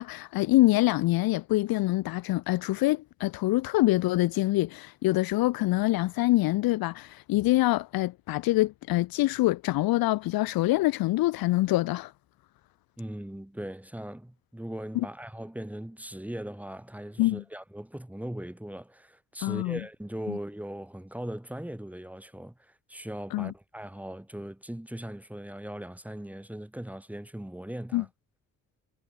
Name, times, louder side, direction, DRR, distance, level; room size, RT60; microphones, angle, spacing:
voice 1, 0.0-12.1 14.9-15.1 17.2-17.4 19.4-19.8 20.3-20.4 23.3-23.5 27.9-28.0, left 18 dB, 75° left, 0.7 m, -25 dB
voice 2, 13.0-28.1, right 1 dB, 5° right, 3.9 m, -39 dB
cardioid pair, 115°, 36 cm